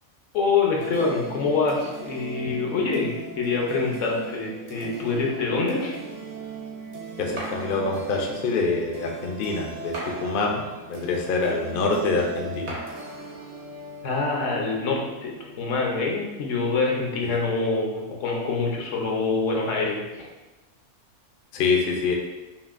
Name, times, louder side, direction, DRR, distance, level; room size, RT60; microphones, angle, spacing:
voice 1, 0.3-6.0 14.0-20.3, left 4 dB, 75° left, -1 dB, 1.1 m, -25 dB
sound 1, 0.8-17.4, right 4 dB, 45° right, 0.5 m, -40 dB
voice 2, 7.2-12.8 17.2-17.3 21.5-22.1, left 3 dB, 55° left, 0 dB, 0.6 m, -25 dB
sound 2, 7.4-8.5 9.9-11.1 12.7-13.7, right 1 dB, 60° right, 1.2 m, -39 dB
5.5 x 2.5 x 2.4 m, 1.1 s
omnidirectional pair, 1.3 m